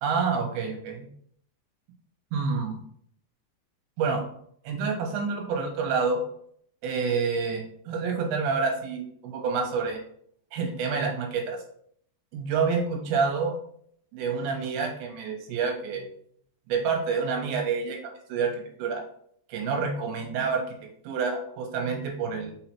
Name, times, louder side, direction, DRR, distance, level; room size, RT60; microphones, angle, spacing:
voice 1, 0.0-1.1 2.3-2.8 4.0-4.2 4.7-6.2 6.8-10.0 10.5-11.6 12.3-13.6 14.1-16.1 16.7-18.0 18.3-18.5 18.8-19.0 19.5-20.6 21.1-22.5, right 5 dB, 85° right, 2 dB, 3.6 m, -28 dB
6.4 x 5.8 x 2.9 m, 0.64 s
omnidirectional pair, 5.0 m